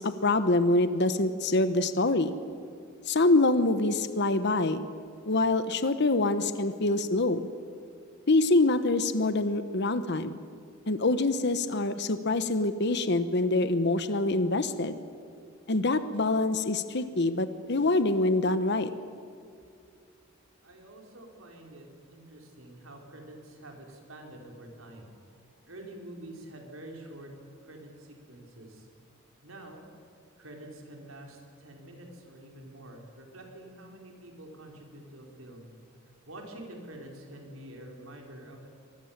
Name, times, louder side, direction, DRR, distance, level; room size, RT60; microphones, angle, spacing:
voice 1, 0.0-2.3 3.1-4.9 5.3-7.5 8.3-10.4 10.9-14.9 15.7-18.9, left 2 dB, 55° left, 11 dB, 1.1 m, -25 dB
voice 2, 20.6-25.1 25.7-27.3 27.7-27.9 28.3-28.7 29.4-29.8 30.4-31.4 31.6-35.7 36.3-38.7, right 1 dB, 85° right, 1 dB, 4.9 m, -47 dB
25.0 x 20.5 x 7.4 m, 2.4 s
head